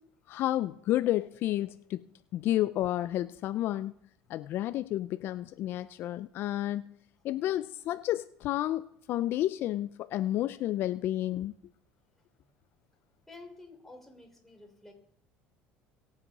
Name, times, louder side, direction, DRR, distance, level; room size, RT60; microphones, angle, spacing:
voice 1, 0.3-2.1 2.3-3.9 4.3-6.9 7.2-11.5, left 13 dB, 60° left, 13 dB, 0.4 m, -31 dB
voice 2, 13.3-14.9, left 2 dB, 5° left, 2 dB, 3.4 m, -51 dB
19.5 x 7.4 x 4.1 m, 0.69 s
supercardioid pair, 100°, 4 cm